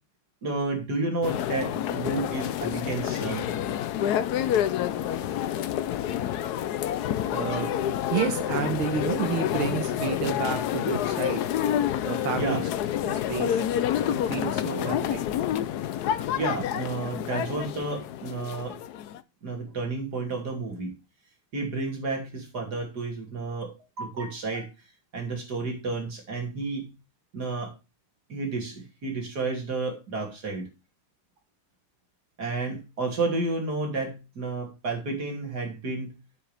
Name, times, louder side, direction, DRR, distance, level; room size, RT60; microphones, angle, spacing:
voice 1, 0.4-3.5 12.4-12.6 16.3-18.8 19.4-20.9 21.5-24.7 25.1-26.9 27.3-27.7 28.3-30.7 32.4-36.1, right 3 dB, 50° right, 1 dB, 3.3 m, -31 dB
sound 1, 1.2-19.2, left 10 dB, 70° left, 1.0 m, -28 dB
voice 2, 7.3-7.8 8.1-11.4 12.0-12.6 13.0-13.6 14.1-15.3, right 8 dB, 80° right, 7 dB, 1.9 m, -30 dB
9.9 x 7.6 x 3.4 m, 0.27 s
omnidirectional pair, 2.3 m